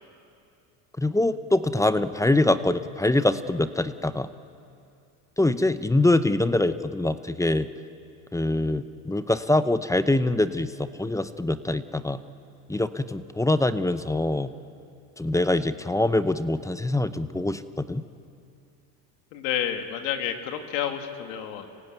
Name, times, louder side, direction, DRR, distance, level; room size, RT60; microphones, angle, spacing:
voice 1, 1.0-4.3 5.4-7.7 8.3-12.2 12.7-14.5 15.2-18.0, left 2 dB, 5° left, 13 dB, 0.6 m, -24 dB
voice 2, 19.3-21.7, left 10 dB, 85° left, 6 dB, 2.1 m, -30 dB
25.5 x 16.5 x 9.3 m, 2.5 s
supercardioid pair, 100°, 50 cm